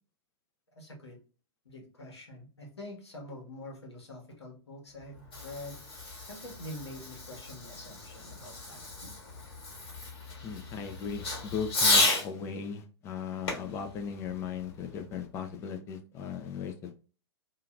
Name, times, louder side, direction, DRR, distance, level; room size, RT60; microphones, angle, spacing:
voice 1, 0.8-1.2 1.6-8.9, left 1 dB, 75° left, 0 dB, 1.1 m, -46 dB
Fireworks, 5.0-12.3 13.5-15.1, left 2 dB, 60° left, 1.3 m, -33 dB
voice 2, 10.4-17.0, left 6 dB, 20° left, 6 dB, 0.4 m, -37 dB
2.7 x 2.4 x 2.3 m, 0.36 s
figure-of-eight pair, 110°, 14 cm